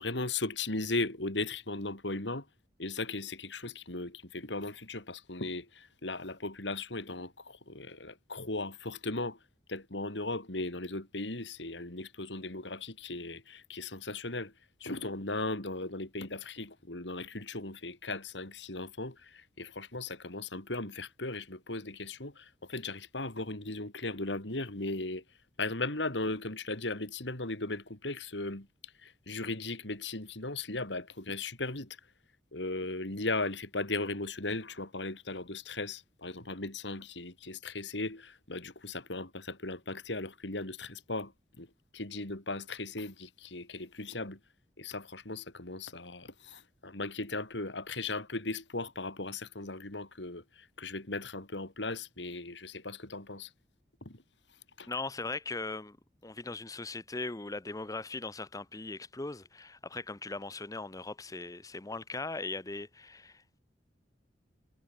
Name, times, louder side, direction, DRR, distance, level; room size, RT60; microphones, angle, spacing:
voice 1, 0.0-2.5 2.8-9.4 9.7-14.5 14.8-25.2 25.6-32.0 32.5-41.7 41.9-44.4 44.8-53.5 54.0-54.2 54.8-54.9, left 2 dB, 80° left, 3.8 m, -37 dB
voice 2, 54.9-56.0 56.2-63.4, left 3 dB, 20° left, 0.8 m, -39 dB
head